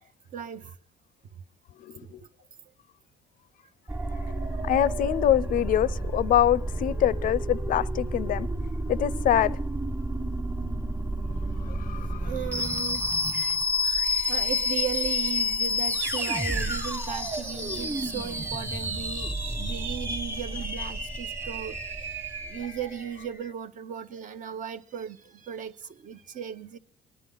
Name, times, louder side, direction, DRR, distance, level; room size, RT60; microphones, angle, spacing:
voice 1, 0.3-0.7 2.0-2.3 12.2-13.0 13.3-13.6 14.3-21.9 22.4-26.8, right 8 dB, 50° right, 0.9 m, -36 dB
sound 1, 3.9-23.2, left 1 dB, 15° right, 1.3 m, -30 dB
voice 2, 4.6-8.5 8.9-9.6 11.7-12.3, left 11 dB, 55° left, 0.5 m, -25 dB
23.5 x 10.5 x 3.9 m
cardioid pair, 110°, 17 cm